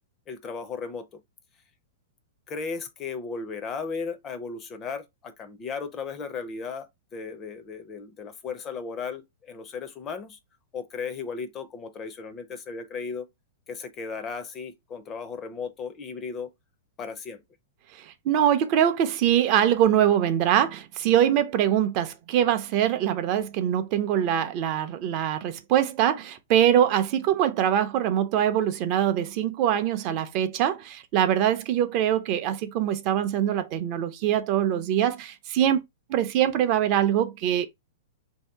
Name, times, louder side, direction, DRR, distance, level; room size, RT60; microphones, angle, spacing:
voice 1, 0.3-1.1 2.5-10.4 10.7-13.3 13.7-16.5 17.0-17.4, left 5 dB, 20° left, 0.5 m, -35 dB
voice 2, 18.0-35.8 36.1-37.7, right 10 dB, 35° right, 0.5 m, -23 dB
3.1 x 2.7 x 4.5 m
supercardioid pair, 165°, 0 cm